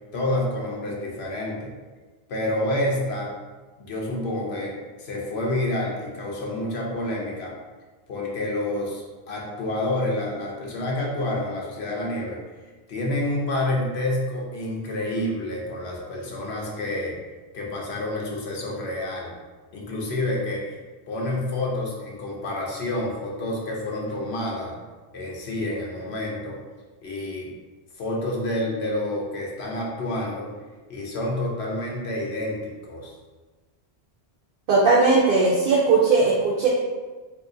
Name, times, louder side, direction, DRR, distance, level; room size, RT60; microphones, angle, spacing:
voice 1, 0.1-1.7 2.3-3.3 3.8-7.5 8.1-12.4 12.9-17.2 17.5-19.3 19.7-20.8 21.1-24.8 25.1-26.6 27.0-27.5 28.0-30.5 30.9-33.1, left 1 dB, 70° left, -2 dB, 1.0 m, -28 dB
voice 2, 34.7-36.7, right 3 dB, 60° right, -4 dB, 0.7 m, -18 dB
2.9 x 2.4 x 3.7 m, 1.3 s
omnidirectional pair, 1.1 m